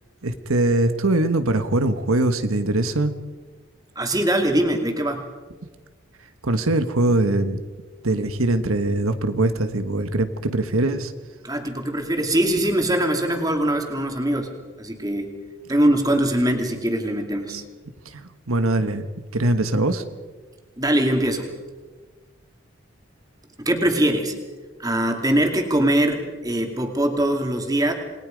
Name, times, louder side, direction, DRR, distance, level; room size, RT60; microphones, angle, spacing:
voice 1, 0.2-3.1 6.4-7.6 8.0-11.1 17.5-17.6 18.0-19.1 19.3-20.0, right 2 dB, 85° right, 9 dB, 1.4 m, -22 dB
voice 2, 4.0-5.2 11.4-14.5 14.8-15.3 15.7-17.6 20.8-21.5 23.6-24.4 24.8-27.9, right 1 dB, 15° right, 4 dB, 2.5 m, -22 dB
28.5 x 20.5 x 5.2 m, 1.3 s
head